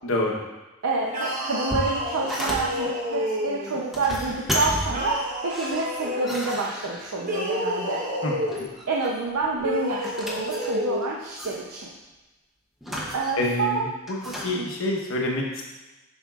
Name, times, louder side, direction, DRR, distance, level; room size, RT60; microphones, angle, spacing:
voice 1, 0.0-0.3 8.2-8.7 13.4-15.7, left 1 dB, 65° left, -1 dB, 1.0 m, -27 dB
voice 2, 0.8-8.0 8.9-11.9 13.1-13.7 14.5-14.7, right 3 dB, 75° right, -3 dB, 0.6 m, -28 dB
sound 1, 1.1-3.8 4.9-6.4 7.2-8.7 9.6-11.0, equal, 35° right, 0.9 m, -30 dB
sound 2, 1.3-2.9 3.7-5.2 5.5-7.4 8.3-9.1 9.4-11.0 11.3-11.6 12.8-13.6 14.1-14.5, equal, ahead, 0.7 m, -32 dB
7.1 x 5.5 x 2.4 m, 1.1 s
head